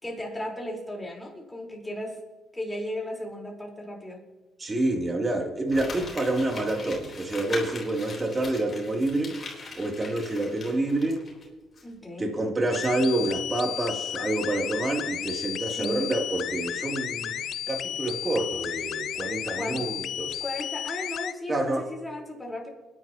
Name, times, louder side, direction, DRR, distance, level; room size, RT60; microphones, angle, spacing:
voice 1, 0.0-2.2 2.5-4.3 11.8-12.3 15.7-16.1 19.5-19.9 20.4-22.7, left 1 dB, 10° left, -1 dB, 4.5 m, -35 dB
voice 2, 4.6-9.4 9.8-11.2 12.2-20.4 21.5-21.9, right 2 dB, 25° right, 1 dB, 3.1 m, -28 dB
Crumpling crinkling, 5.7-11.4 11.8-11.9, left 3 dB, 40° left, 4.2 m, -40 dB
sound 1, 12.7-21.3, left 10 dB, 70° left, 0.5 m, -33 dB
29.5 x 11.0 x 3.0 m, 1.2 s
cardioid pair, 90°, 0 cm